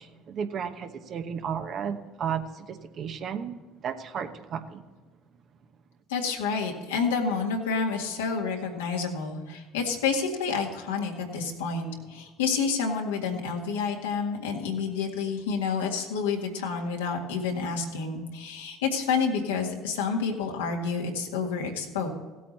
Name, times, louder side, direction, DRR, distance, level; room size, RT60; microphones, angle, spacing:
voice 1, 0.0-3.6 3.8-4.8, right 7 dB, 55° right, 8 dB, 1.1 m, -33 dB
voice 2, 6.1-22.1, left 5 dB, 90° left, 1 dB, 1.9 m, -29 dB
16.5 x 8.4 x 4.2 m, 1.3 s
hypercardioid pair, 70°, 0 cm